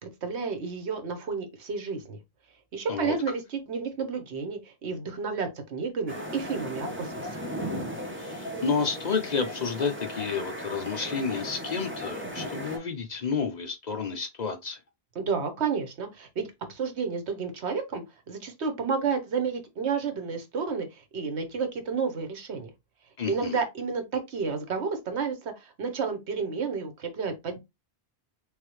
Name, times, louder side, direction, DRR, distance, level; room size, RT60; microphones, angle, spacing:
voice 1, 0.0-2.2 2.7-7.3 15.1-22.7 23.3-27.6, right 5 dB, 85° right, 1.3 m, -31 dB
sound 1, 6.1-12.8, equal, 10° right, 1.1 m, -36 dB
voice 2, 8.1-14.8 23.2-23.6, left 5 dB, 50° left, 0.7 m, -30 dB
3.7 x 3.6 x 3.1 m
omnidirectional pair, 1.1 m